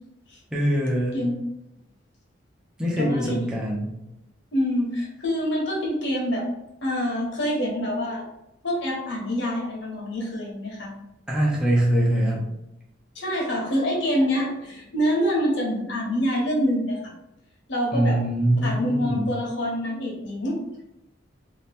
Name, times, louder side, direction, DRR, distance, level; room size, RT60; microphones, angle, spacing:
voice 1, 0.5-1.2 2.8-3.9 11.3-12.5 17.9-19.2, right 1 dB, 5° right, -5 dB, 0.6 m, -23 dB
voice 2, 3.0-3.6 4.5-6.4 6.8-8.2 8.6-10.9 13.1-17.1 17.7-18.2 18.6-20.6, equal, 70° left, -2 dB, 1.1 m, -26 dB
3.1 x 2.8 x 3.4 m, 0.86 s
head